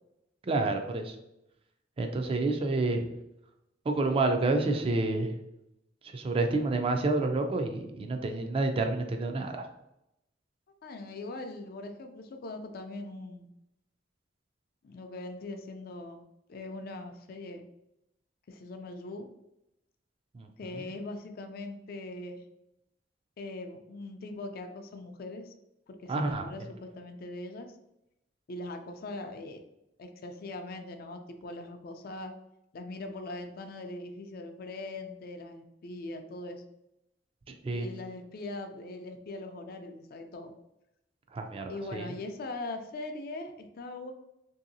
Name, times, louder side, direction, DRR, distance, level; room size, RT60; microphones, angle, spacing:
voice 1, 0.4-1.2 2.0-3.1 3.9-5.3 6.1-9.6 20.3-20.9 26.1-26.5 37.6-37.9 41.3-42.1, right 2 dB, 30° right, 5 dB, 0.3 m, -29 dB
voice 2, 10.8-13.5 14.8-16.2 16.5-17.6 18.5-19.3 20.6-22.4 23.4-25.5 25.9-27.8 28.5-29.6 30.0-32.3 32.7-36.6 37.7-40.5 41.7-44.1, left 2 dB, 55° left, 6 dB, 0.4 m, -41 dB
3.1 x 2.7 x 2.6 m, 0.86 s
head